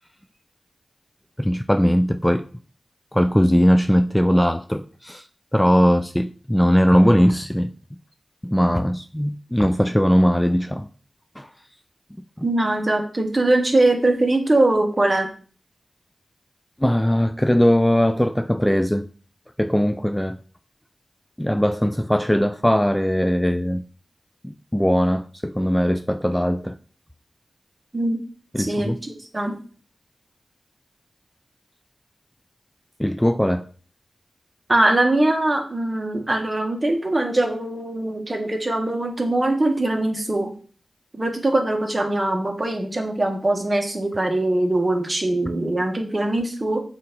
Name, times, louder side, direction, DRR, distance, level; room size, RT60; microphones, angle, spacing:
voice 1, 1.4-2.4 3.1-5.3 5.5-7.7 8.4-10.9 11.4-11.5 16.8-19.1 19.6-20.4 21.4-23.8 24.4-26.8 28.5-29.0 33.0-33.7, equal, 10° left, 0.4 m, -19 dB
voice 2, 12.4-15.3 27.9-28.2 28.6-29.6 34.7-40.5 41.1-46.8, right 2 dB, 35° right, 1.5 m, -22 dB
6.7 x 2.9 x 5.2 m
cardioid pair, 45°, 0 cm